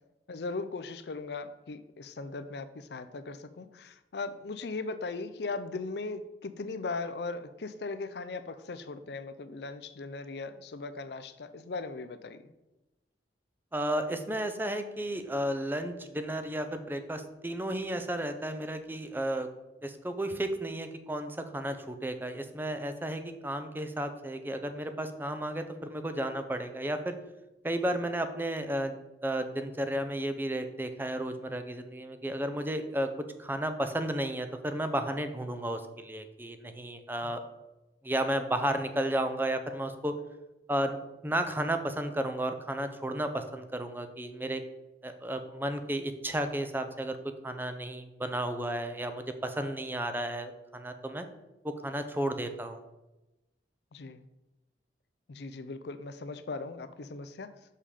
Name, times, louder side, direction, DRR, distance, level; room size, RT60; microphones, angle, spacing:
voice 1, 0.3-12.4 37.2-37.3 53.9-54.2 55.3-57.5, left 3 dB, 65° left, 12 dB, 0.5 m, -38 dB
voice 2, 13.7-19.5 19.8-27.1 27.6-29.0 29.2-33.1 33.4-37.4 38.0-40.1 40.7-41.0 41.2-44.6 45.0-47.2 47.4-51.3 51.6-52.8, right 1 dB, 10° right, 8 dB, 0.6 m, -33 dB
6.7 x 5.6 x 4.9 m, 0.99 s
head